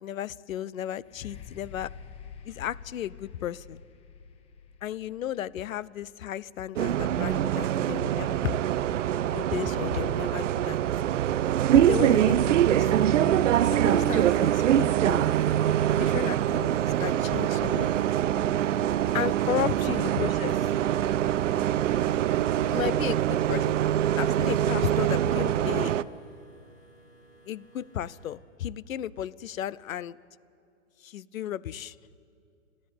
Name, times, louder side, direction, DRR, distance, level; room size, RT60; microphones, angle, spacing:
voice 1, 0.0-1.9 2.4-3.8 4.8-8.5 9.3-10.8 11.7-15.3 15.9-17.9 19.1-20.7 22.7-23.8 24.2-26.0 27.4-30.2 31.0-32.0, left 11 dB, 70° left, 20 dB, 0.7 m, -34 dB
sound 1, 1.0-8.7 9.4-9.5, left 7 dB, 15° left, 0.9 m, -49 dB
Bus, 6.8-26.0, right 11 dB, 60° right, 0.7 m, -24 dB
sound 2, 18.5-28.3, right 1 dB, 40° left, 6.6 m, -57 dB
28.5 x 11.0 x 9.3 m, 2.5 s
hypercardioid pair, 135°, 42 cm